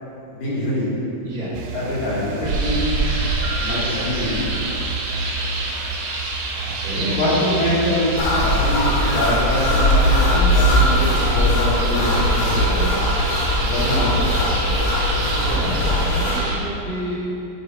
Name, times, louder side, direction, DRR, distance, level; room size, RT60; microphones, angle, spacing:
voice 1, 0.3-0.9 1.7-2.9 3.6-4.5 6.9-11.1 11.3-12.9 13.6-14.5, left 1 dB, 55° left, -9 dB, 2.4 m, -24 dB
sound 1, 1.5-16.5, right 3 dB, 85° right, 3.1 m, -32 dB
sound 2, 2.4-16.6, right 2 dB, 65° right, 2.5 m, -27 dB
voice 2, 6.5-7.1 13.8-14.1 15.3-17.1, equal, 45° right, -9 dB, 1.6 m, -30 dB
sound 3, 8.2-16.4, left 1 dB, 90° left, 3.8 m, -20 dB
9.8 x 5.4 x 4.3 m, 2.8 s
omnidirectional pair, 5.4 m